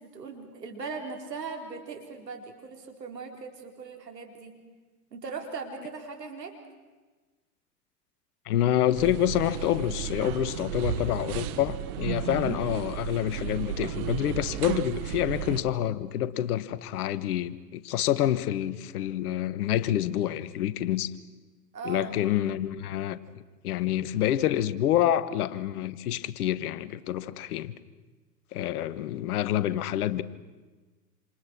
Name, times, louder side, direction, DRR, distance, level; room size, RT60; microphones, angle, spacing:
voice 1, 0.0-4.5 5.1-6.6 12.1-12.3 21.7-22.4, right 4 dB, 85° right, 4.1 m, -39 dB
voice 2, 8.5-21.1 21.8-23.2 23.6-27.7 28.5-30.2, left 12 dB, 65° left, 1.4 m, -27 dB
sound 1, 9.0-15.6, right 11 dB, 65° right, 1.5 m, -33 dB
27.5 x 27.0 x 6.2 m
hypercardioid pair, 95°, 48 cm